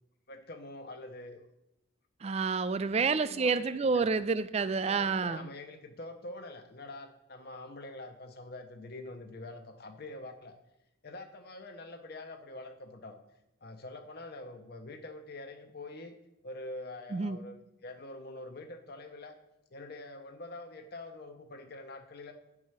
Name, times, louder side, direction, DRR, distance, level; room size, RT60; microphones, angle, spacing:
voice 1, 0.3-1.4 2.9-4.1 4.6-10.6 11.0-13.1 13.6-16.2 16.4-19.4 19.7-22.3, left 2 dB, 50° left, 5 dB, 0.7 m, -45 dB
voice 2, 2.2-5.5 17.1-17.4, right 4 dB, 30° right, 15 dB, 0.3 m, -29 dB
9.0 x 4.8 x 5.6 m, 0.88 s
head